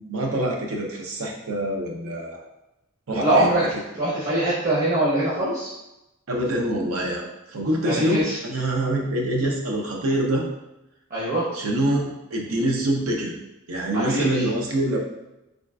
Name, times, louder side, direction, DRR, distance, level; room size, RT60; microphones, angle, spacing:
voice 1, 0.0-2.4 3.1-3.5 6.3-10.5 11.5-13.3 13.7-15.0, right 1 dB, 80° right, 0 dB, 0.6 m, -25 dB
voice 2, 3.1-3.6 3.9-5.7 7.8-8.4 11.1-11.5 13.9-14.4, right 1 dB, 40° right, -8 dB, 0.7 m, -23 dB
3.6 x 2.3 x 2.3 m, 0.93 s
head